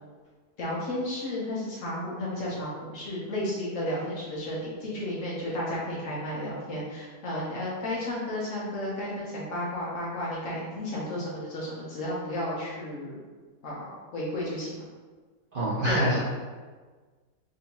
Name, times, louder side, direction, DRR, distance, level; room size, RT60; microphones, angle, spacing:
voice 1, 0.6-13.2 13.6-14.8 15.9-16.1, left 1 dB, 55° left, -6 dB, 1.1 m, -33 dB
voice 2, 15.5-16.2, equal, 60° right, -8 dB, 0.5 m, -25 dB
3.8 x 2.8 x 2.8 m, 1.4 s
omnidirectional pair, 1.7 m